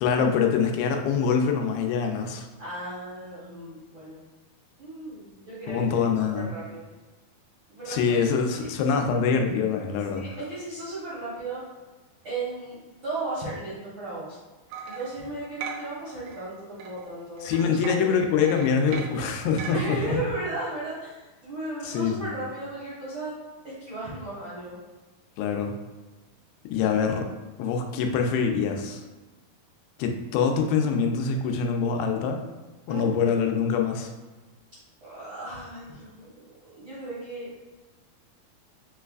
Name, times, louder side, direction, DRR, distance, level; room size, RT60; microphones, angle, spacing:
voice 1, 0.0-2.5 5.7-6.5 7.9-10.3 17.4-20.2 21.8-22.4 25.4-25.7 26.7-27.3 27.6-29.0 30.0-32.4 32.9-34.1, left 6 dB, 85° left, 3 dB, 2.5 m, -24 dB
voice 2, 2.6-4.2 4.8-6.9 7.7-8.2 8.5-8.7 8.9-9.2 10.1-11.6 12.2-12.8 13.0-14.4 14.8-18.2 19.5-23.3 23.8-24.8 26.8-26.9 32.9-33.1 35.0-37.5, right 2 dB, 70° right, -10 dB, 1.2 m, -35 dB
sound 1, 14.7-16.5 16.8-19.8, right 6 dB, 85° right, 2.4 m, -39 dB
5.8 x 3.2 x 2.4 m, 1.2 s
omnidirectional pair, 4.3 m